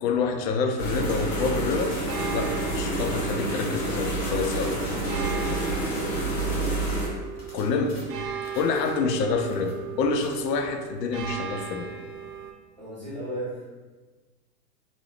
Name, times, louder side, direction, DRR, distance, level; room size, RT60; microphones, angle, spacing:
voice 1, 0.0-2.0 2.3-4.8 7.5-8.0 8.5-11.9, left 4 dB, 85° left, 5 dB, 0.5 m, -27 dB
sound 1, 0.8-7.1, right 1 dB, 55° left, 1.1 m, -28 dB
sound 2, 2.1-12.5, right 7 dB, 75° right, 0.6 m, -37 dB
sound 3, 3.8-9.2 9.5-9.9 10.2-10.4, left 1 dB, 40° left, 0.8 m, -49 dB
voice 2, 5.3-6.7 12.8-13.5, equal, 30° right, -8 dB, 0.4 m, -36 dB
2.6 x 2.0 x 3.1 m, 1.3 s
hypercardioid pair, 175°, 48 cm